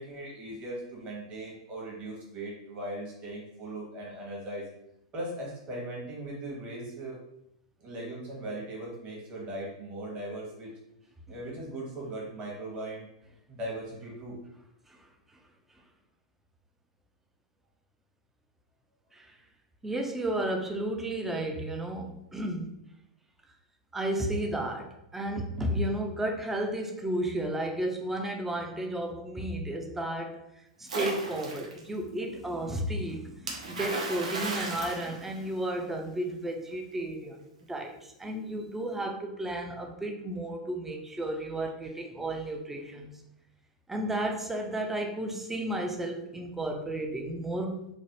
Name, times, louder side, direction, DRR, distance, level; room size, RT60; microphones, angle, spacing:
voice 1, 0.0-4.7 5.1-7.2 7.8-10.7 11.3-13.1 13.5-14.4, right 1 dB, 35° right, -3 dB, 1.1 m, -39 dB
voice 2, 19.8-22.8 23.9-30.4 30.8-37.4 37.7-43.2 43.9-47.8, right 1 dB, 10° right, 3 dB, 0.4 m, -33 dB
Splash splatter, 30.9-31.8 33.5-35.9, right 3 dB, 85° right, 0.6 m, -35 dB
3.1 x 2.0 x 2.9 m, 0.82 s
hypercardioid pair, 105°, 4 cm